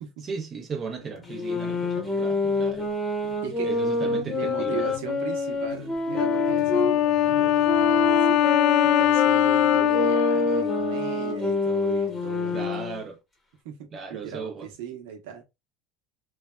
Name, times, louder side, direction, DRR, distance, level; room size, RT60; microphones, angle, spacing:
voice 1, 0.2-2.9 3.6-4.9 12.5-13.2 13.9-14.7, right 5 dB, 35° right, 0.7 m, -36 dB
sound 1, 1.0-8.6, left 8 dB, 80° left, 1.0 m, -44 dB
sound 2, 1.3-7.0 7.6-13.0, left 2 dB, 15° left, 0.9 m, -27 dB
voice 2, 4.2-12.7 13.6-15.4, right 8 dB, 80° right, 0.9 m, -37 dB
Wind instrument woodwind instrument, 6.1-11.6, left 11 dB, 55° left, 0.3 m, -22 dB
3.2 x 2.3 x 2.2 m
supercardioid pair, 125°, 0 cm